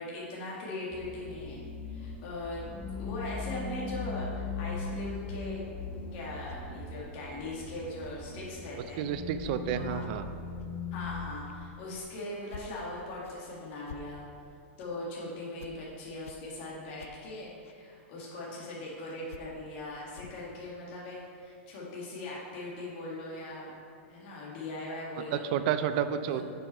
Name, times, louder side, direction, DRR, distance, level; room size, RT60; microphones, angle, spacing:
voice 1, 0.0-1.6 1.9-2.6 3.0-5.6 6.1-9.0 9.7-10.1 10.9-14.2 14.8-23.7 24.1-25.5 26.3-26.4, left 1 dB, 45° left, -5 dB, 2.0 m, -40 dB
sound 1, 0.9-11.4, left 4 dB, 15° left, 0.5 m, -39 dB
sound 2, 6.5-6.6 8.0-8.1 8.6-8.8 9.4-9.5 10.0-10.1 10.6-10.7 11.4-11.6 11.9-12.1 12.5-12.7 13.2-13.4 13.9-14.0 14.8-14.9 15.6-15.7 16.2-16.4 17.0-17.1 17.6-17.8 18.6-18.7 19.3-19.4 20.1-20.4, left 7 dB, 85° left, 0.6 m, -48 dB
voice 2, 9.0-10.2 25.3-26.4, right 9 dB, 40° right, 10 dB, 0.5 m, -30 dB
10.0 x 5.6 x 4.3 m, 2.4 s
supercardioid pair, 160°, 7 cm